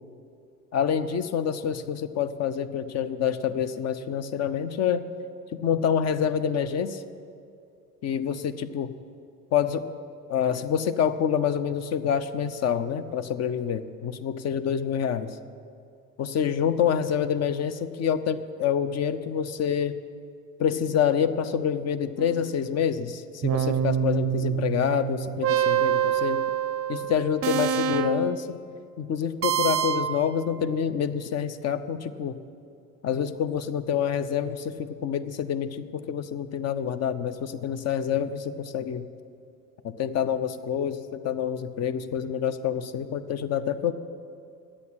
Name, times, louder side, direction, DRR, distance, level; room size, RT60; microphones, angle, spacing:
voice 1, 0.7-5.1 5.5-7.0 8.0-8.9 9.5-9.8 10.3-15.4 16.2-19.9 20.6-26.4 26.9-28.6 29.0-32.4 33.0-39.1 39.8-43.9, left 8 dB, 35° left, 12 dB, 0.7 m, -27 dB
sound 1, 22.2-22.7 23.4-28.5 29.4-30.2, right 9 dB, 30° right, 0.6 m, -26 dB
9.8 x 8.2 x 9.8 m, 2.4 s
hypercardioid pair, 80°, 46 cm